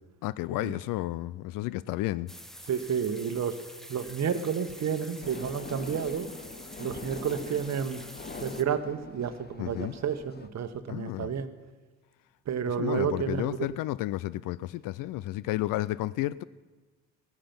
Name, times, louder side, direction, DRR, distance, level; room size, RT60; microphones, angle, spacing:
voice 1, 0.2-2.3 9.6-9.9 10.9-11.3 12.7-16.4, left 16 dB, 55° left, 0.5 m, -32 dB
sound 1, 2.3-8.6, equal, ahead, 0.9 m, -47 dB
voice 2, 2.7-3.6 3.9-6.3 6.8-8.0 8.4-11.5 12.5-13.6, right 7 dB, 40° right, 1.2 m, -30 dB
sound 2, 5.2-10.5, left 4 dB, 25° left, 1.1 m, -43 dB
16.5 x 10.0 x 5.9 m
hypercardioid pair, 55°, 41 cm